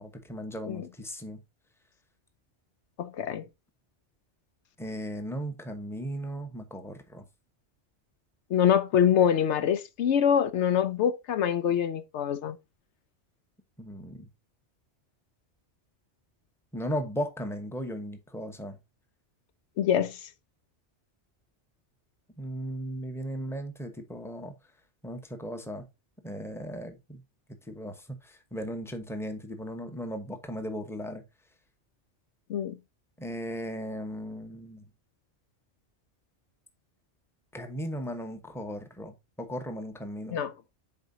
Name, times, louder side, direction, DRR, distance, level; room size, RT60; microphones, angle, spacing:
voice 1, 0.0-1.4 4.8-7.3 13.8-14.3 16.7-18.8 22.4-24.5 25.0-25.9 26.2-27.2 27.7-31.2 33.2-34.9 37.5-40.4, equal, ahead, 1.0 m, -36 dB
voice 2, 3.0-3.4 8.5-12.6 19.8-20.2 32.5-32.8 40.3-40.5, left 8 dB, 75° left, 0.9 m, -25 dB
10.5 x 4.4 x 2.7 m
omnidirectional pair, 1.2 m